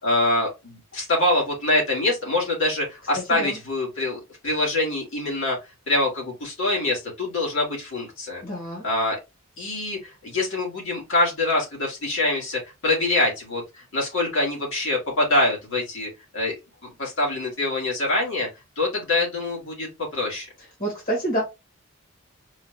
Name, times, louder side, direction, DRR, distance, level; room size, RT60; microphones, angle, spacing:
voice 1, 0.0-5.6 5.9-8.4 8.8-9.2 9.6-16.5 16.8-18.5 18.8-20.5, left 2 dB, 65° left, 2.5 m, -25 dB
voice 2, 3.1-3.6 8.4-8.8 20.8-21.4, right 1 dB, 45° left, 1.9 m, -28 dB
4.8 x 2.6 x 3.2 m
head